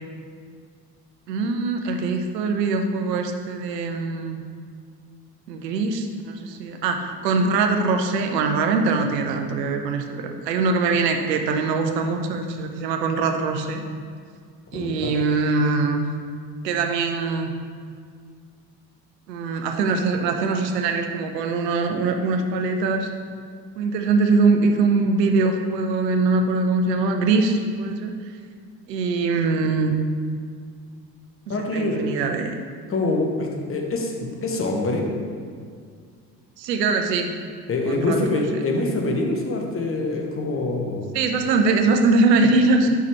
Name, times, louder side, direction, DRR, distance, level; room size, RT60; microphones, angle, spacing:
voice 1, 1.3-4.4 5.5-13.8 14.7-16.0 16.6-17.5 19.3-23.1 23.8-28.1 28.9-29.9 31.7-32.5 36.6-37.3 37.9-38.2 41.1-42.9, right 3 dB, 70° right, 4 dB, 0.8 m, -22 dB
voice 2, 14.7-15.1 31.5-32.1 32.9-35.1 37.7-41.1, left 2 dB, 25° left, 1 dB, 1.1 m, -25 dB
5.6 x 4.7 x 4.5 m, 2.1 s
figure-of-eight pair, 65°, 50 cm